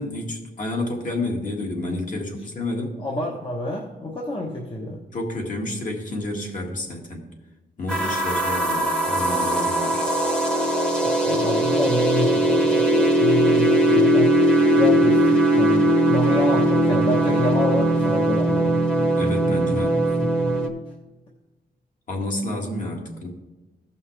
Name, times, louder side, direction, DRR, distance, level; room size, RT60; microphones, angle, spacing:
voice 1, 0.0-3.0 5.1-7.2 7.8-10.1 19.2-20.3 22.1-23.3, left 1 dB, 50° left, 0 dB, 1.9 m, -30 dB
voice 2, 3.0-5.0 11.2-14.4 14.8-18.8, left 1 dB, 30° left, -1 dB, 1.0 m, -27 dB
sound 1, 7.9-20.7, right 1 dB, 5° left, 1.0 m, -20 dB
15.5 x 5.5 x 3.2 m, 1.1 s
wide cardioid pair, 145°, 17 cm